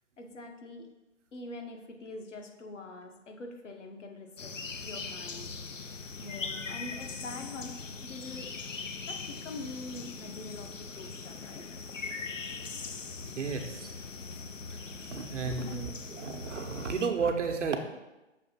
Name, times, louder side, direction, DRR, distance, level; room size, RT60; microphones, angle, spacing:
voice 1, 0.2-0.9 1.3-4.5 4.8-5.5 6.2-7.8 8.0-8.5 9.1-11.7 15.6-16.0, left 2 dB, 70° left, 3 dB, 1.1 m, -44 dB
sound 1, 4.4-17.1, left 4 dB, 90° left, 0.6 m, -41 dB
voice 2, 13.4-13.9 14.7-17.8, right 5 dB, 70° right, 5 dB, 0.9 m, -33 dB
6.4 x 2.8 x 5.6 m, 1.0 s
figure-of-eight pair, 130°, 37 cm